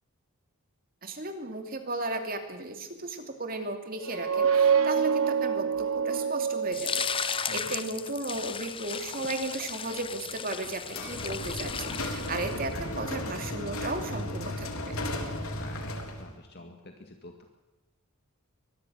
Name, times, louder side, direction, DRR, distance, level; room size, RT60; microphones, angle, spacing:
voice 1, 1.0-15.0, right 2 dB, 40° right, 6 dB, 2.6 m, -35 dB
sound 1, 4.0-7.6, right 7 dB, 70° right, 1.1 m, -26 dB
sound 2, 6.7-12.8, left 7 dB, 25° left, 0.8 m, -35 dB
sound 3, 10.9-16.3, left 1 dB, 75° left, 3.8 m, -35 dB
voice 2, 15.5-17.5, left 2 dB, 45° left, 4 dB, 2.0 m, -48 dB
24.5 x 21.0 x 6.5 m, 1.1 s
head